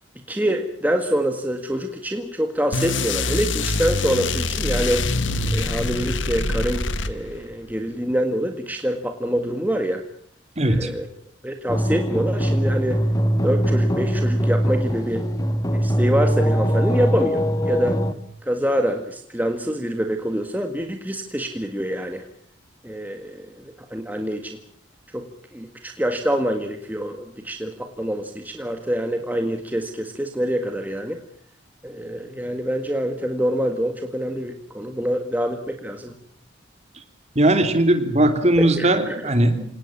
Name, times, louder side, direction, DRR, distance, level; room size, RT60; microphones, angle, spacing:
voice 1, 0.3-5.1 5.5-10.0 10.6-11.1 11.4-13.0 13.4-15.2 15.7-18.0 18.4-22.2 22.8-24.6 25.1-25.3 25.5-31.2 31.8-36.2 38.6-39.1, equal, 10° right, 5 dB, 1.8 m, -25 dB
sound 1, 2.7-7.5, left 3 dB, 75° left, 1.8 m, -24 dB
voice 2, 10.6-10.9 37.3-39.6, right 1 dB, 35° right, 8 dB, 3.1 m, -19 dB
sound 2, 11.7-18.1, equal, 20° left, 1.5 m, -21 dB
27.5 x 18.5 x 7.4 m, 0.63 s
head